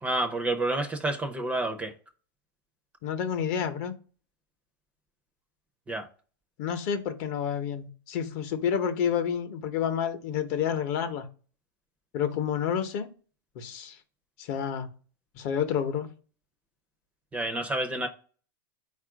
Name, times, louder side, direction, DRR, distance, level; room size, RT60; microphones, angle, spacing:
voice 1, 0.0-1.9 5.9-6.1 17.3-18.1, right 2 dB, 10° right, 0.5 m, -29 dB
voice 2, 3.0-3.9 6.6-11.3 12.1-13.1 13.6-14.0 14.4-14.9 15.3-16.1, left 8 dB, 50° left, 0.7 m, -29 dB
4.2 x 2.4 x 4.7 m
supercardioid pair, 145°, 12 cm